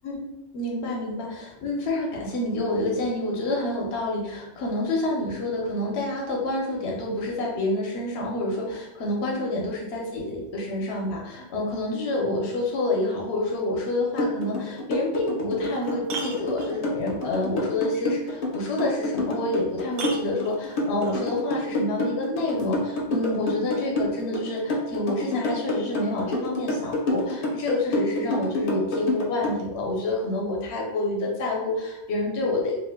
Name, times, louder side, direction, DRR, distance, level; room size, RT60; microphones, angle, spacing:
voice 1, 0.0-32.8, left 2 dB, 70° left, -1 dB, 1.0 m, -28 dB
sound 1, 14.2-29.6, left 1 dB, 45° left, 0.5 m, -27 dB
sound 2, 15.0-15.1 15.6-17.1 19.1-19.2 19.9-21.2 22.6-22.7, right 4 dB, 70° right, 0.8 m, -37 dB
2.7 x 2.1 x 3.4 m, 0.91 s
omnidirectional pair, 1.2 m